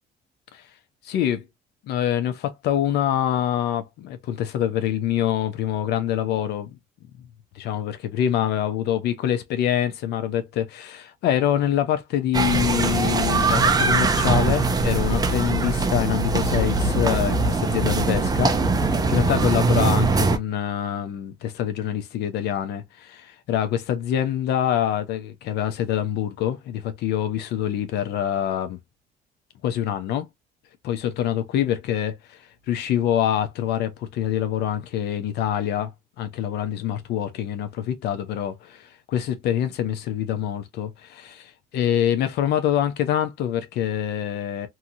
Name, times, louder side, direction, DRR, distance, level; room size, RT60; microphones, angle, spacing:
voice 1, 1.0-1.4 1.9-6.8 7.6-18.6 19.1-28.8 29.6-30.3 30.8-35.9 36.2-44.7, left 10 dB, 75° left, 0.7 m, -25 dB
sound 1, 12.3-20.4, right 3 dB, 20° right, 0.6 m, -21 dB
2.8 x 2.8 x 2.5 m
cardioid pair, 110°, 17 cm